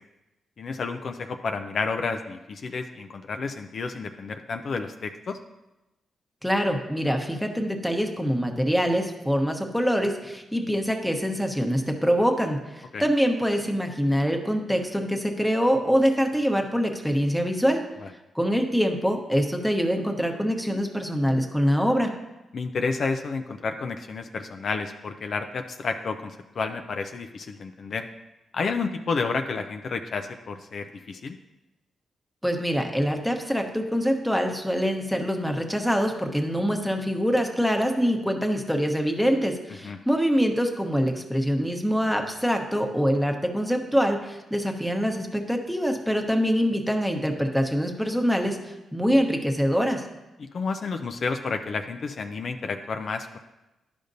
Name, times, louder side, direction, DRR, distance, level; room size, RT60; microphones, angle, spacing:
voice 1, 0.6-5.4 12.9-13.0 18.0-18.1 22.5-28.1 28.5-31.4 39.8-40.0 50.4-53.4, left 4 dB, 60° left, 6 dB, 0.4 m, -30 dB
voice 2, 6.4-17.8 18.3-22.1 32.4-50.0, equal, ahead, 3 dB, 1.0 m, -24 dB
11.0 x 5.1 x 2.7 m, 1.0 s
cardioid pair, 65°, 0 cm